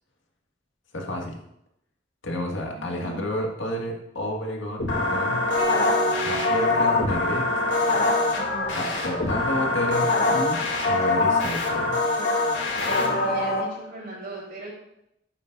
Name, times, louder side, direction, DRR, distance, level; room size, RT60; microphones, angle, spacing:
voice 1, 0.9-1.4 2.2-5.5 6.2-7.7 8.7-12.0, left 1 dB, 90° left, 1 dB, 1.9 m, -31 dB
voice 2, 2.8-3.3 12.9-14.7, right 2 dB, 55° right, -3 dB, 4.1 m, -38 dB
sound 1, 4.8-13.6, left 2 dB, 75° left, 2.5 m, -23 dB
sound 2, 5.6-7.9, right 4 dB, 70° right, 3.2 m, -34 dB
12.5 x 8.7 x 2.6 m, 0.81 s
head